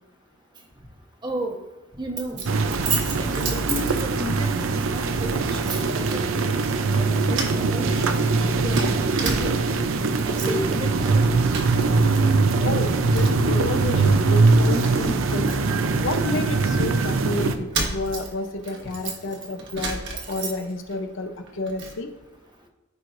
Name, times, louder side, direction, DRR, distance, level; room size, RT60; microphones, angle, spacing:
voice 1, 1.2-1.6 2.0-2.5 3.2-6.3 6.9-8.2 8.6-9.6 10.3-11.3 12.7-12.8 16.5-16.6, right 1 dB, 25° right, 2 dB, 1.1 m, -32 dB
Keys jangling, 2.2-4.5 4.8-5.0 5.6-6.2 6.6-7.0 7.3-9.8 10.1-10.7 11.0-12.2 12.4-13.6 14.0-14.1 14.5-16.8 17.4-21.0 21.3-22.0, right 4 dB, 65° right, 1.5 m, -33 dB
sound 1, 2.5-17.6, right 3 dB, 85° right, 0.6 m, -22 dB
voice 2, 12.6-15.6 16.0-20.0 20.3-22.1, left 2 dB, 65° left, 6 dB, 0.8 m, -30 dB
14.0 x 4.8 x 2.6 m, 1.1 s
head